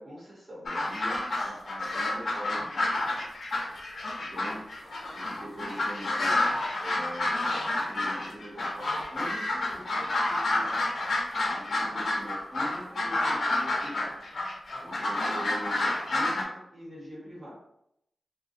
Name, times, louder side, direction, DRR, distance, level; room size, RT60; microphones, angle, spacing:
voice 1, 0.0-3.3 4.2-17.6, equal, 45° right, -7 dB, 0.8 m, -44 dB
sound 1, 0.7-16.4, left 2 dB, 75° left, 0.6 m, -29 dB
2.3 x 2.2 x 2.5 m, 0.76 s
wide cardioid pair, 145°, 0 cm